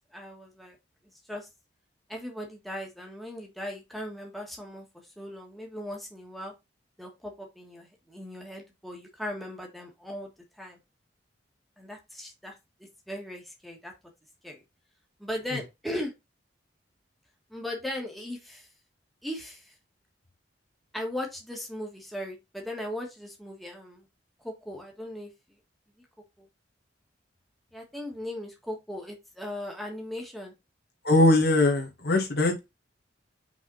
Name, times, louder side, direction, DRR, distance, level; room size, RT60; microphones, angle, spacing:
voice 1, 0.1-0.7 1.3-1.5 2.1-4.9 5.2-6.5 7.0-10.3 10.6-10.8 11.8-12.5 13.1-13.9 14.4-14.6 15.2-16.1 17.5-18.7 19.2-19.7 20.9-24.1 24.4-25.3 26.4-26.5 27.7-30.5, left 1 dB, ahead, 1.6 m, -38 dB
voice 2, 31.0-32.6, left 1 dB, 60° left, 1.9 m, -21 dB
5.9 x 4.0 x 4.1 m
head